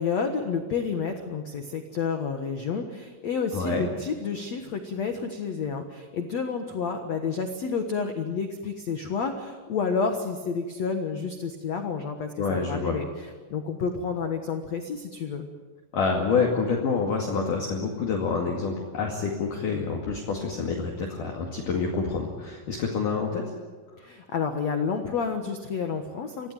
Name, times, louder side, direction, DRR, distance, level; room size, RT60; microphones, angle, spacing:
voice 1, 0.0-13.1 13.5-15.5 24.0-26.5, left 5 dB, 90° left, 5 dB, 1.5 m, -30 dB
voice 2, 3.5-3.9 12.4-13.0 15.9-23.5, left 5 dB, 50° left, 0 dB, 3.3 m, -27 dB
25.5 x 17.0 x 9.2 m, 1.4 s
omnidirectional pair, 5.6 m